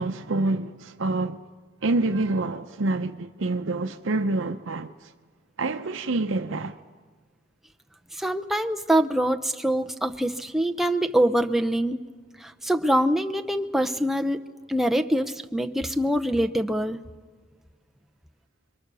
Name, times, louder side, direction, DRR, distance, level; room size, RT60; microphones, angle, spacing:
voice 1, 0.0-1.4 1.8-5.1 5.6-6.8, right 2 dB, 80° right, 0.7 m, -27 dB
voice 2, 8.1-12.0 12.4-14.4 14.7-17.0, right 1 dB, ahead, 0.7 m, -24 dB
28.0 x 23.0 x 6.9 m
head